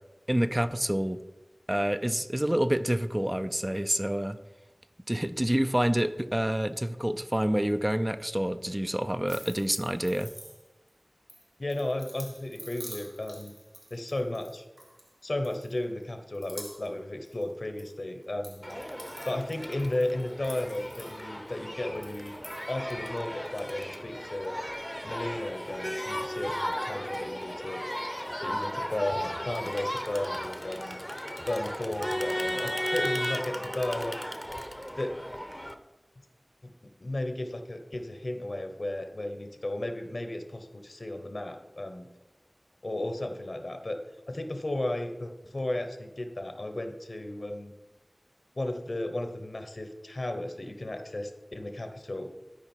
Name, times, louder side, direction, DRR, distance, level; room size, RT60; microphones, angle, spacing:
voice 1, 0.3-1.2 1.7-4.4 5.1-10.3, equal, 20° right, 10 dB, 0.4 m, -27 dB
sound 1, 9.3-10.9 11.3-15.1 15.4-16.0 16.3-17.0 17.2-17.9 18.2-21.5 22.0-22.7, right 1 dB, 70° right, 2.2 m, -48 dB
voice 2, 11.6-13.5 13.9-14.7 15.2-18.6 19.2-22.3 22.7-24.5 25.0-27.8 28.4-31.0 31.5-34.2 35.0-35.1 36.6-36.7 37.0-42.1 42.8-44.0 44.3-47.7 48.6-52.3, left 1 dB, 75° left, 6 dB, 1.0 m, -34 dB
Crowd, 18.6-35.7, equal, 5° left, 0.8 m, -35 dB
12.5 x 5.0 x 4.5 m, 1.1 s
wide cardioid pair, 40°, 0 cm